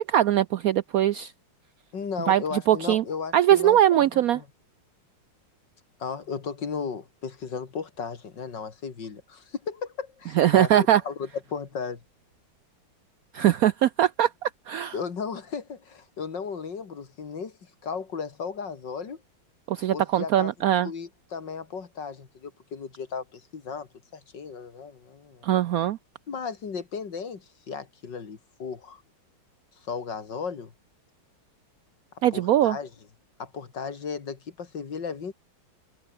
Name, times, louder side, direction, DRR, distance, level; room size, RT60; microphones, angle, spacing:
voice 1, 0.1-1.3 2.3-2.4 2.7-3.0 3.3-4.4 10.4-11.0 13.3-14.9 19.7-20.9 25.4-26.0 32.2-32.8, right 12 dB, 75° right, 0.8 m, -21 dB
voice 2, 1.9-4.4 6.0-12.0 14.9-19.2 19.9-20.5 20.8-25.5 26.3-29.0 29.9-30.7 32.3-32.9 33.4-35.3, left 5 dB, 60° left, 3.0 m, -35 dB
omnidirectional pair, 2.2 m